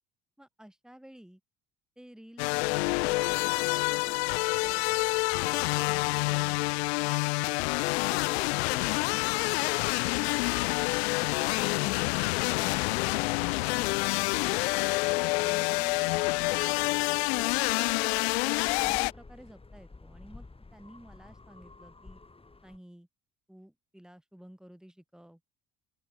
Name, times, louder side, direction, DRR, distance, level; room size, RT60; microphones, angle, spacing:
voice 1, 0.4-1.4 2.0-4.9 5.4-6.6 7.0-7.2 7.4-7.6 8.1-9.7 10.1-10.4 11.0-14.6 15.1-16.7 17.3-18.3 18.8-20.5 20.7-22.2 22.6-23.1 23.5-25.4, equal, ahead, 3.7 m, -52 dB
sound 1, 2.4-19.1, left 25 dB, 75° left, 0.5 m, -27 dB
sound 2, 15.7-22.8, left 3 dB, 15° left, 5.4 m, -51 dB
open air
hypercardioid pair, 60°, 32 cm